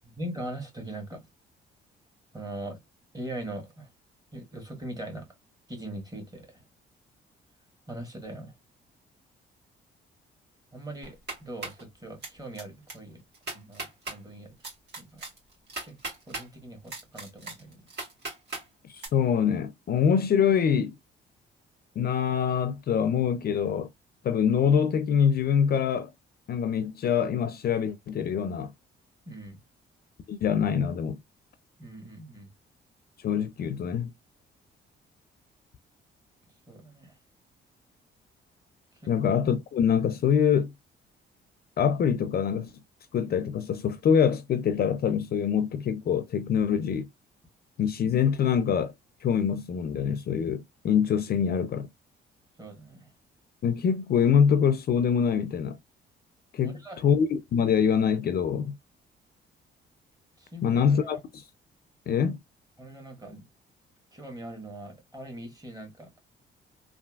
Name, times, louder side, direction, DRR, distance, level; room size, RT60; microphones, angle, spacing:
voice 1, 0.0-1.3 2.3-2.8 3.1-3.9 4.3-5.3 5.7-6.6 7.9-8.5 10.7-13.2 13.5-14.5 15.0-15.2 15.9-16.0 16.3-17.9 29.2-29.6 31.8-32.5 36.7-37.1 39.0-39.1 52.6-53.1 56.6-57.1 60.4-61.2 62.8-63.5 64.1-66.1, right 1 dB, 20° right, 1.5 m, -41 dB
sound 1, 11.0-11.8 12.2-12.6 12.9-13.0 13.3-14.2 14.6-16.5 16.9-18.6 19.0-19.1, right 3 dB, 60° right, 1.8 m, -37 dB
voice 2, 18.9-21.0 22.0-23.9 24.2-26.1 26.5-28.7 30.3-31.2 33.2-34.1 39.1-40.7 41.8-42.7 43.1-47.1 47.8-48.9 49.2-51.9 53.6-55.8 56.5-58.8 60.6-61.4 62.1-62.4, left 7 dB, 50° left, 0.5 m, -25 dB
3.3 x 2.5 x 2.3 m
cardioid pair, 90°, 20 cm